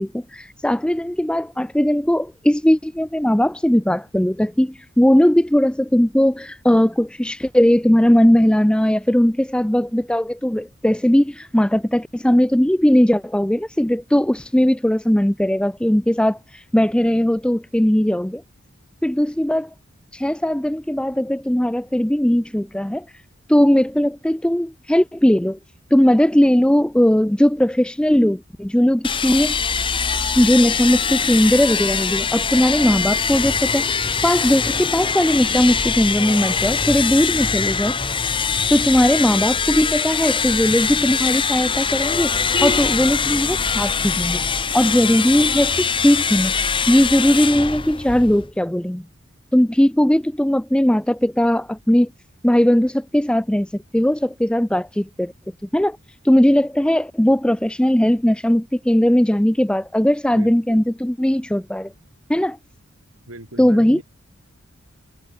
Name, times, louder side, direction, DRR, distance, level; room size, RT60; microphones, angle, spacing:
voice 1, 0.0-18.4 19.0-19.7 20.1-23.1 23.5-25.6 25.9-29.6 30.4-38.0 38.7-44.4 44.7-46.6 46.9-49.0 49.5-52.1 52.4-55.3 55.7-56.0 56.2-61.9 62.3-62.6 63.6-64.0, equal, 5° left, 0.4 m, -18 dB
sound 1, 29.0-48.5, left 5 dB, 25° left, 1.9 m, -22 dB
voice 2, 60.3-60.8 63.3-64.0, right 1 dB, 85° right, 5.8 m, -39 dB
head